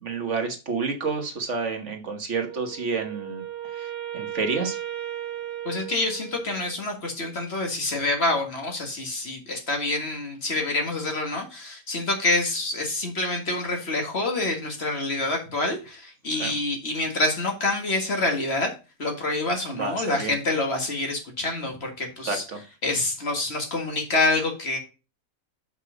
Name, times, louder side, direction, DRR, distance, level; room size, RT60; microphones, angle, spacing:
voice 1, 0.0-3.4 3.8-4.8 16.4-16.5 19.7-20.3 22.3-22.6, right 4 dB, 55° right, 5 dB, 1.6 m, -29 dB
Wind instrument woodwind instrument, 2.4-6.8, right 12 dB, 20° right, 1.9 m, -36 dB
voice 2, 5.6-18.7 19.0-22.4 22.8-24.8, left 2 dB, 45° left, 3 dB, 2.0 m, -27 dB
6.4 x 5.6 x 5.0 m, 0.31 s
omnidirectional pair, 1.5 m